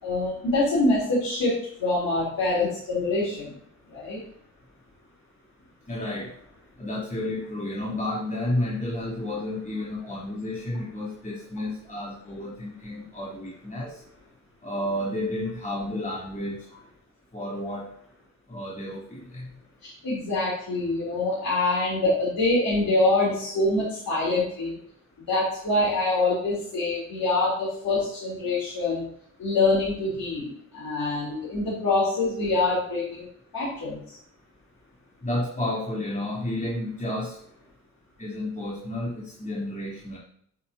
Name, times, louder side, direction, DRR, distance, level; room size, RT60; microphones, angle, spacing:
voice 1, 0.0-3.5 3.9-4.2 19.8-24.8 25.2-29.1 29.4-33.3 33.5-34.2, left 2 dB, 55° left, -7 dB, 4.0 m, -25 dB
voice 2, 5.9-6.3 6.8-14.0 14.6-16.7 17.3-17.9 18.5-19.5 35.2-37.4 38.2-40.2, left 1 dB, 20° left, -7 dB, 3.8 m, -31 dB
9.7 x 8.9 x 3.0 m, 0.66 s
hypercardioid pair, 40°, 41 cm